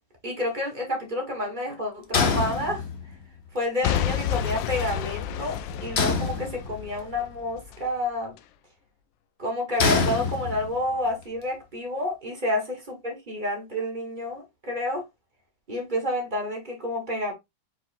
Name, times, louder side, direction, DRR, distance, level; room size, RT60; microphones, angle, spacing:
voice 1, 0.2-2.8 3.5-8.3 9.4-15.0 15.7-17.3, left 1 dB, 25° right, 1.4 m, -29 dB
sound 1, 2.1-3.2 6.0-7.0 9.8-10.9, left 5 dB, 55° left, 0.7 m, -25 dB
Boom / Shatter / Crushing, 3.8-7.8 8.4-8.5, left 9 dB, 75° left, 1.2 m, -30 dB
4.8 x 4.3 x 2.5 m
omnidirectional pair, 2.1 m